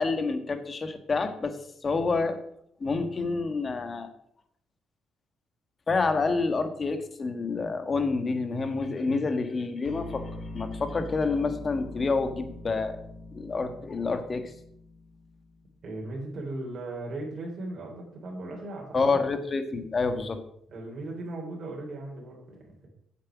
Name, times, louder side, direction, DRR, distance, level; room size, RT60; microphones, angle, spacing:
voice 1, 0.0-1.6 1.8-2.4 2.8-4.1 5.9-10.2 10.5-13.0 13.3-14.4 18.9-20.4, left 4 dB, 35° left, 8 dB, 1.5 m, -28 dB
sound 1, 9.8-15.9, left 2 dB, 65° left, 1.5 m, -42 dB
voice 2, 15.8-19.3 20.7-22.9, right 2 dB, 55° right, -2 dB, 3.3 m, -37 dB
8.0 x 7.5 x 6.1 m, 0.70 s
cardioid pair, 90°, 0 cm